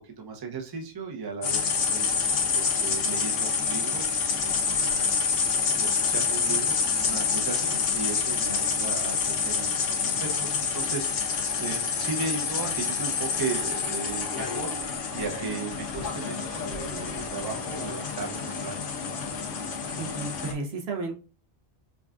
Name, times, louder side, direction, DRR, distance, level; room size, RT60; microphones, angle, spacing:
voice 1, 0.0-4.1 4.4-18.8, right 4 dB, 25° right, 0 dB, 0.6 m, -36 dB
sound 1, 1.4-20.5, left 5 dB, 85° left, 1.1 m, -28 dB
voice 2, 20.0-21.2, right 3 dB, 60° right, 2 dB, 1.0 m, -33 dB
5.0 x 2.3 x 2.4 m, 0.34 s
omnidirectional pair, 1.2 m